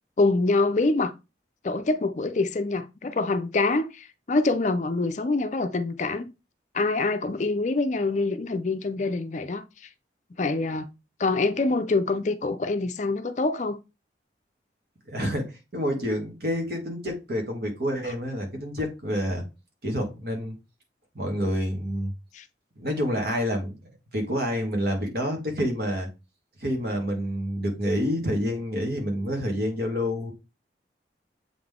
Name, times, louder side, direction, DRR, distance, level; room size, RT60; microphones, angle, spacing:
voice 1, 0.2-1.1 1.6-6.3 6.7-9.6 10.4-10.9 11.2-13.8 22.3-22.4, left 3 dB, 40° left, 0.4 m, -25 dB
voice 2, 15.1-19.4 19.8-20.5 21.1-22.1 22.8-23.8 24.1-26.1 26.6-30.3, equal, 60° right, 2.0 m, -28 dB
7.6 x 3.8 x 3.6 m
head